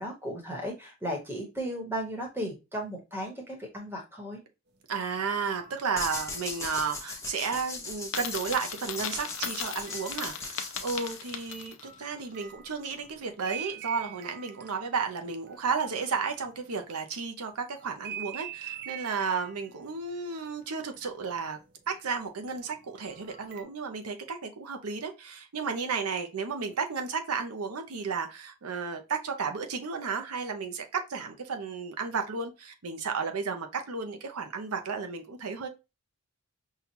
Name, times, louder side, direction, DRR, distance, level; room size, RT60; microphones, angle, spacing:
voice 1, 0.0-4.4, equal, 10° right, 1.0 m, -35 dB
voice 2, 4.9-21.6 21.9-35.7, right 5 dB, 85° right, 0.7 m, -33 dB
sound 1, 5.0-7.5 8.8-10.9 11.2-17.1 17.8-21.9 22.4-23.6, right 9 dB, 45° right, 0.5 m, -46 dB
sound 2, 6.0-11.7, left 3 dB, 15° left, 0.6 m, -39 dB
Coin (dropping), 8.0-11.9, left 8 dB, 60° left, 0.5 m, -38 dB
5.5 x 2.3 x 2.9 m
head